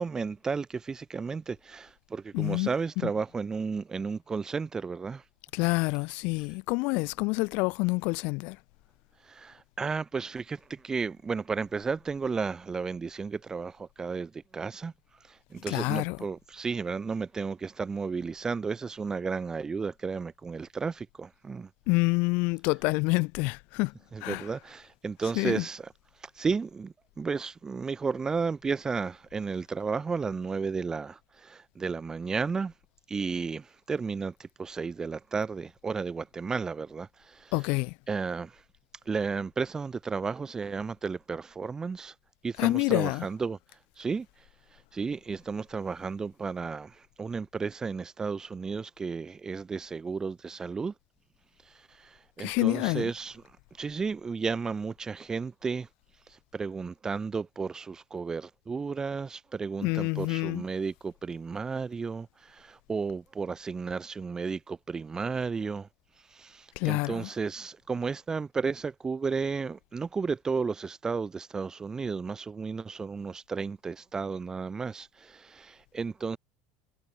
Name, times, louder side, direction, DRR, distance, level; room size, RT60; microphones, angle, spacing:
voice 1, 0.0-5.2 9.2-21.7 24.1-25.9 26.1-32.7 33.1-37.5 38.1-38.6 39.0-42.1 42.4-43.6 44.0-50.9 51.6-53.4 53.7-55.9 56.3-65.9 66.2-76.4, right 5 dB, 20° right, 1.4 m, -33 dB
voice 2, 2.3-2.7 3.0-3.1 5.5-8.6 15.7-16.2 21.9-23.9 24.2-24.5 25.3-25.6 37.5-37.9 42.6-43.3 52.4-53.1 59.8-60.6 66.8-67.3, left 28 dB, 55° left, 1.2 m, -27 dB
figure-of-eight pair, 70°, 3 cm